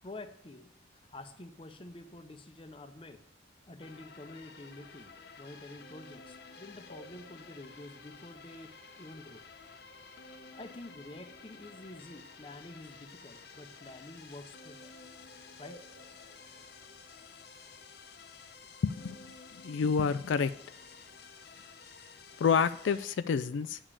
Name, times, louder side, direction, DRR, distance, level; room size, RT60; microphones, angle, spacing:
voice 1, 0.0-3.2 3.7-9.4 10.5-14.9 15.6-15.9, left 2 dB, 30° left, 8 dB, 0.7 m, -48 dB
sound 1, 3.8-23.2, left 4 dB, 60° left, 0.8 m, -52 dB
voice 2, 18.8-19.2 19.6-20.5 22.4-23.8, left 6 dB, 80° left, 14 dB, 0.3 m, -28 dB
8.7 x 5.0 x 7.1 m, 0.70 s
head